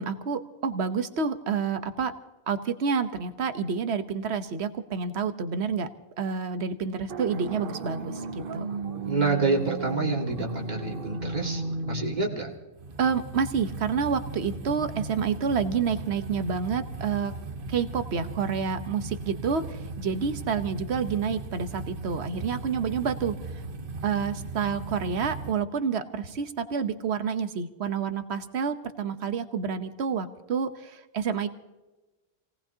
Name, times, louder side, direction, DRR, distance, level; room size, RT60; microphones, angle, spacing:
voice 1, 0.0-2.1 2.5-5.9 6.2-8.8 13.0-17.3 17.7-23.6 24.0-31.5, right 6 dB, 85° right, 10 dB, 1.2 m, -29 dB
sound 1, 7.1-25.5, right 3 dB, 60° right, 1.1 m, -36 dB
voice 2, 9.1-12.5, right 3 dB, 45° right, 0 dB, 2.2 m, -28 dB
28.0 x 18.0 x 2.8 m, 1.1 s
omnidirectional pair, 1.1 m